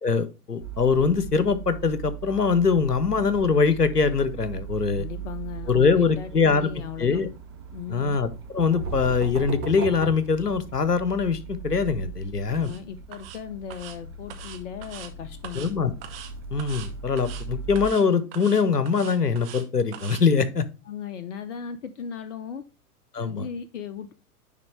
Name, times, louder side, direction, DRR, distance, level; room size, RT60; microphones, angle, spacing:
voice 1, 0.0-5.1 5.7-6.7 7.0-7.3 7.9-8.3 8.5-12.7 15.5-15.9 16.5-20.7 23.1-23.5, left 5 dB, 90° left, 0.8 m, -23 dB
sound 1, 0.6-17.9, right 6 dB, 20° right, 0.3 m, -39 dB
voice 2, 4.9-7.2 7.7-8.2 12.5-15.7 20.9-22.6 23.2-24.1, left 8 dB, 50° left, 0.7 m, -37 dB
sound 2, 8.2-11.1, right 5 dB, 70° right, 1.3 m, -35 dB
sound 3, 12.5-12.8 13.1-13.4 13.7-14.0 14.3-15.1 15.4-15.7 16.0-16.3 16.6-16.9 17.2-17.4 17.8-18.0 18.3-19.6 19.9-20.2, right 10 dB, 40° right, 1.0 m, -42 dB
9.7 x 3.7 x 3.2 m
figure-of-eight pair, 100°, 46 cm